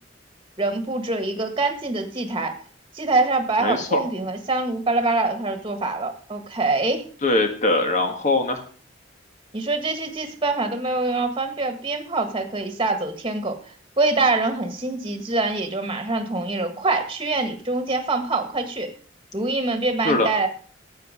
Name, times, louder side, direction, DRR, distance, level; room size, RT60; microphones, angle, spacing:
voice 1, 0.6-2.5 2.9-7.0 9.5-13.6 14.0-18.9 19.3-20.5, right 3 dB, 25° right, 7 dB, 1.6 m, -24 dB
voice 2, 3.6-4.0 7.2-8.6 20.0-20.3, left 2 dB, 40° left, 5 dB, 1.7 m, -21 dB
13.0 x 8.4 x 5.1 m, 0.43 s
head